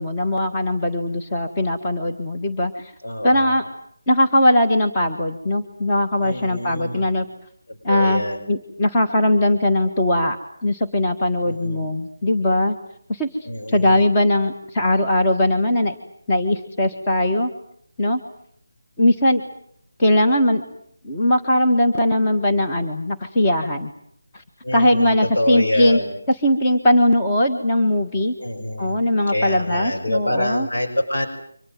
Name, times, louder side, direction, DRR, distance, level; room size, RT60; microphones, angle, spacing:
voice 1, 0.0-2.9 3.2-3.6 4.1-7.2 7.8-8.2 8.5-10.4 10.6-12.8 13.1-13.3 13.7-15.9 16.3-17.5 18.0-18.2 19.0-19.4 20.0-20.6 21.0-23.9 24.3-24.4 24.7-26.0 26.3-28.3 28.8-30.7, left 1 dB, 15° left, 2 dB, 1.5 m, -19 dB
voice 2, 3.0-3.6 6.2-7.1 7.9-8.4 11.4-11.9 13.4-14.1 24.6-26.1 28.4-29.0 29.3-31.3, left 1 dB, 75° left, 3 dB, 6.3 m, -26 dB
28.0 x 25.0 x 7.5 m, 0.67 s
figure-of-eight pair, 175°, 0 cm